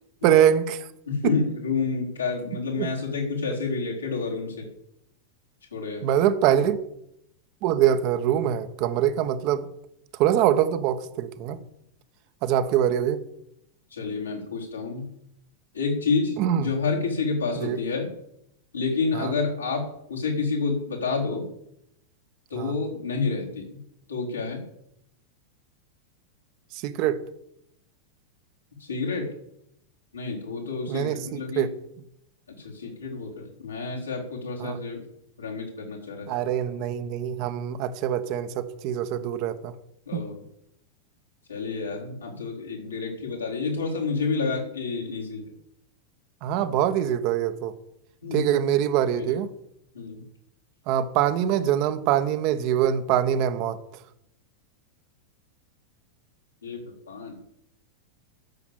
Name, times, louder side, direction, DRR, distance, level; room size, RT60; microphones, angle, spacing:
voice 1, 0.2-0.9 2.8-2.9 6.0-6.8 7.6-9.7 10.1-11.6 12.4-13.2 16.4-16.7 17.6-17.8 19.1-19.3 22.5-22.7 26.7-27.2 30.9-31.7 34.6-34.8 36.3-39.7 40.1-40.2 46.4-47.7 48.3-49.5 50.9-53.8, right 10 dB, 45° right, 11 dB, 1.0 m, -24 dB
voice 2, 1.1-4.7 5.7-6.0 13.9-15.1 15.7-18.1 18.7-21.5 22.5-23.8 24.1-24.6 28.8-29.3 30.1-31.7 32.5-35.0 35.4-36.5 40.1-40.4 41.5-45.4 48.2-48.7 49.1-49.4 49.9-50.2 56.6-57.4, left 4 dB, 75° left, -2 dB, 3.9 m, -29 dB
12.0 x 7.2 x 8.8 m, 0.79 s
figure-of-eight pair, 90°, 0 cm